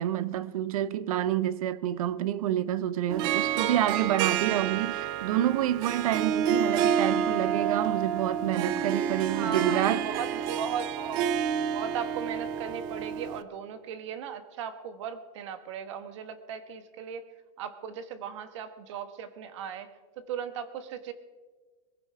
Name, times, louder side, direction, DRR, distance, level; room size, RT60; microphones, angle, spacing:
voice 1, 0.0-10.2, right 12 dB, 75° right, 0.7 m, -28 dB
Harp, 3.1-13.4, right 8 dB, 25° right, 0.4 m, -29 dB
voice 2, 9.3-11.2 11.7-17.2 17.6-19.9 20.2-21.1, right 7 dB, 55° right, 1.2 m, -37 dB
22.0 x 15.5 x 3.4 m
supercardioid pair, 170°, 18 cm